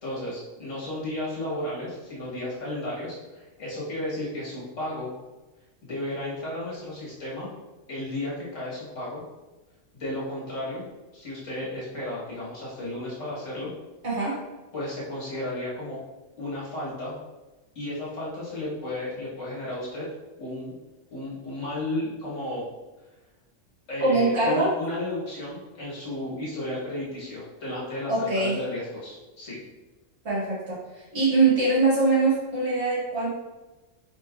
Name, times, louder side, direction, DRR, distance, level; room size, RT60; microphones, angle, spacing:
voice 1, 0.0-5.1 5.8-7.5 7.9-9.2 9.9-10.9 11.1-13.7 14.7-16.0 16.4-17.2 17.7-20.1 20.4-20.7 21.1-22.7 23.9-29.6, left 1 dB, 70° left, -6 dB, 1.6 m, -33 dB
voice 2, 14.0-14.4 24.0-24.7 28.1-28.6 30.3-30.8 31.1-33.3, right 3 dB, 60° right, -7 dB, 1.9 m, -22 dB
5.3 x 3.8 x 2.3 m, 1.1 s
omnidirectional pair, 1.3 m